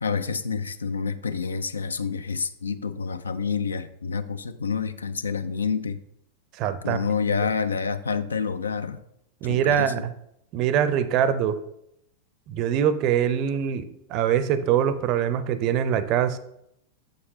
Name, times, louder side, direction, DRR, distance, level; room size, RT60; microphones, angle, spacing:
voice 1, 0.0-6.0 6.8-9.0 9.5-10.0, left 5 dB, 75° left, 13 dB, 0.3 m, -28 dB
voice 2, 6.6-7.0 9.4-10.1 10.5-11.6 12.5-16.4, right 9 dB, 40° right, 13 dB, 0.5 m, -23 dB
6.9 x 6.5 x 2.7 m, 0.77 s
figure-of-eight pair, 90°, 0 cm